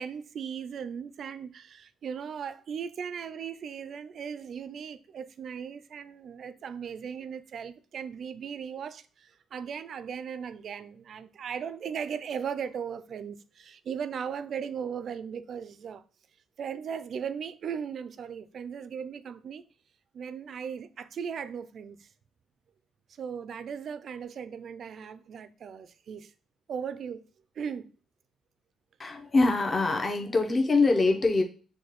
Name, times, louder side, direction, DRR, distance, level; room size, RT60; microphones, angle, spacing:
voice 1, 0.0-16.0 16.6-19.6 20.1-22.1 23.2-26.3 26.7-27.3 27.6-27.9, right 7 dB, 60° right, 0.3 m, -37 dB
voice 2, 29.0-31.4, left 3 dB, 30° left, 0.7 m, -24 dB
6.4 x 2.2 x 2.9 m
cardioid pair, 90°, 0 cm